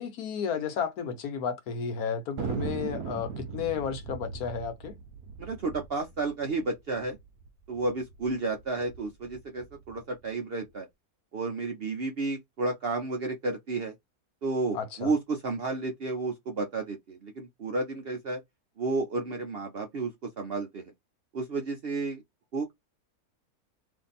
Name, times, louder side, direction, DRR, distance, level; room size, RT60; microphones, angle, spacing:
voice 1, 0.0-5.0 14.7-15.1, left 6 dB, 75° left, 1.2 m, -32 dB
Thunder, 2.4-7.2 7.5-7.6 7.8-8.3 8.8-10.0, right 6 dB, 75° right, 1.1 m, -38 dB
voice 2, 5.4-7.2 7.7-10.9 11.3-13.9 14.4-18.4 18.8-20.9 21.3-22.2 22.5-22.7, right 3 dB, 55° right, 0.7 m, -32 dB
2.7 x 2.6 x 4.0 m
omnidirectional pair, 1.6 m